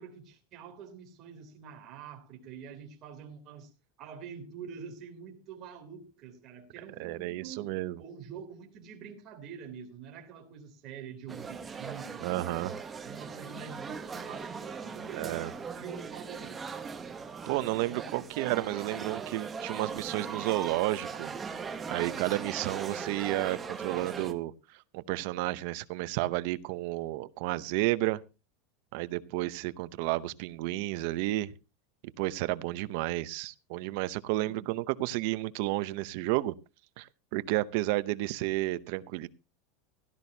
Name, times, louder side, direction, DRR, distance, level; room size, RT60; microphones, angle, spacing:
voice 1, 0.0-3.7 4.0-7.7 8.0-12.7 13.0-16.7 34.4-34.7, right 7 dB, 30° right, 3.1 m, -46 dB
voice 2, 7.0-8.0 12.2-12.7 15.1-15.5 17.5-21.3 21.9-24.5 24.9-28.2 28.9-31.5 32.2-36.5 37.0-39.3, right 18 dB, 45° right, 0.7 m, -31 dB
sound 1, 11.3-24.3, right 5 dB, 10° right, 0.9 m, -39 dB
16.5 x 12.5 x 2.8 m
supercardioid pair, 180°, 0 cm